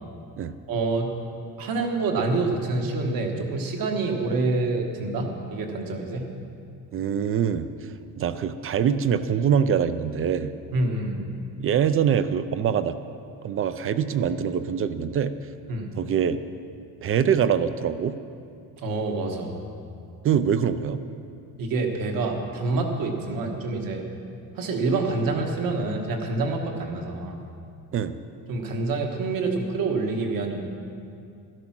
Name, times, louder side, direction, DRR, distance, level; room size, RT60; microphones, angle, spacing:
voice 1, 0.7-1.1 1.6-6.3 10.7-11.2 15.7-15.9 18.8-19.6 21.6-24.1 24.6-27.4 28.5-30.7, right 3 dB, 60° right, 2 dB, 1.7 m, -27 dB
voice 2, 6.9-7.7 8.2-10.5 11.6-13.0 13.4-15.3 16.0-16.4 17.0-18.2 20.2-21.0 27.9-28.2, right 8 dB, 35° right, 12 dB, 0.5 m, -24 dB
12.5 x 12.0 x 6.0 m, 2.5 s
cardioid pair, 160°, 38 cm